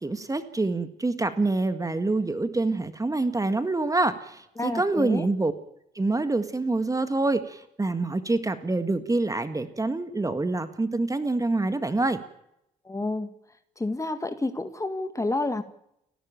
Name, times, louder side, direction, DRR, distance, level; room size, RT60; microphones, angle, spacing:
voice 1, 0.0-5.5 6.0-12.2, right 2 dB, 15° right, 10 dB, 1.8 m, -26 dB
voice 2, 4.6-5.3 12.9-13.3 13.8-15.6, left 2 dB, 15° left, 9 dB, 2.0 m, -29 dB
29.5 x 12.0 x 8.9 m, 0.79 s
figure-of-eight pair, 45°, 21 cm